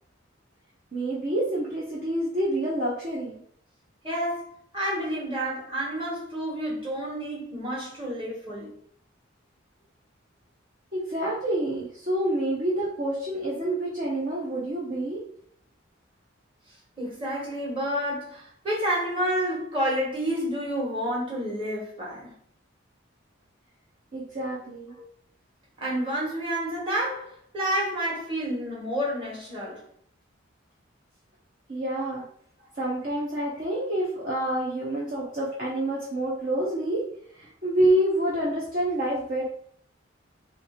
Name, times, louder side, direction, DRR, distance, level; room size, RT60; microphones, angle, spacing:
voice 1, 0.9-3.4 10.9-15.2 24.1-24.9 31.7-32.3 32.8-37.0 37.3-39.5, right 1 dB, 45° right, 0.9 m, -27 dB
voice 2, 4.0-8.7 17.0-22.3 25.0-25.1 25.8-29.8 33.4-33.5, equal, 25° right, 1.7 m, -29 dB
3.3 x 3.2 x 4.3 m
head